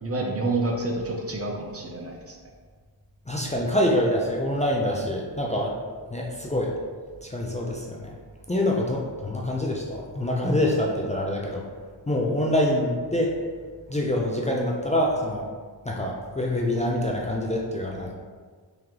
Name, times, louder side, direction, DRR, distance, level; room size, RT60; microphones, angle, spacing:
voice 1, 0.0-2.4, right 2 dB, 30° right, 1 dB, 0.6 m, -28 dB
voice 2, 3.3-5.8 6.1-6.7 7.2-8.1 8.5-11.7 12.1-13.3 13.9-15.4 15.8-18.1, left 1 dB, 15° left, -2 dB, 0.5 m, -25 dB
3.7 x 3.2 x 3.0 m, 1.5 s
cardioid pair, 55°, 46 cm